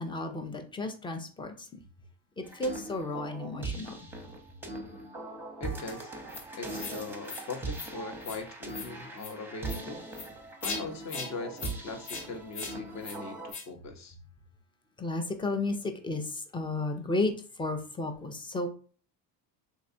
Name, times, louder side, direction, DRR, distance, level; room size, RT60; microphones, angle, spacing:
voice 1, 0.0-1.5 2.4-4.0 15.0-17.3 17.6-18.7, left 2 dB, 10° left, 0.3 m, -33 dB
sound 1, 2.4-13.5, right 2 dB, 5° right, 0.7 m, -40 dB
voice 2, 5.6-6.1 6.6-10.0 10.6-14.2, left 3 dB, 35° left, 0.7 m, -40 dB
sound 2, 6.3-6.4 6.8-7.0 7.2-7.4 7.7-7.9 8.2-8.4 8.7-8.9 9.2-9.3 9.6-9.8 10.1-10.3 10.6-10.8 11.1-11.3 11.6-11.7 12.0-12.2 12.5-12.7 13.0-13.2 13.5-13.6, left 4 dB, 70° left, 0.9 m, -39 dB
3.1 x 2.7 x 2.5 m
hypercardioid pair, 75°, 48 cm